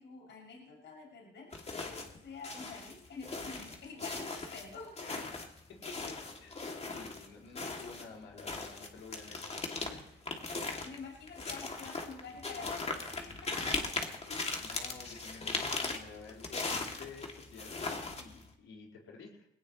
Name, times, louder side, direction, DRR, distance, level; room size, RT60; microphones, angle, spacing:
voice 1, 0.0-1.5 1.9-5.1 10.8-13.8, left 4 dB, 65° left, -1 dB, 6.8 m, -48 dB
sound 1, 1.5-2.2 2.4-7.3 7.6-18.5, left 3 dB, 30° left, 2.6 m, -39 dB
voice 2, 5.0-5.4 5.7-10.6 14.3-19.5, left 4 dB, 85° left, -1 dB, 4.6 m, -51 dB
21.0 x 18.0 x 3.2 m, 0.85 s
cardioid pair, 90°, 20 cm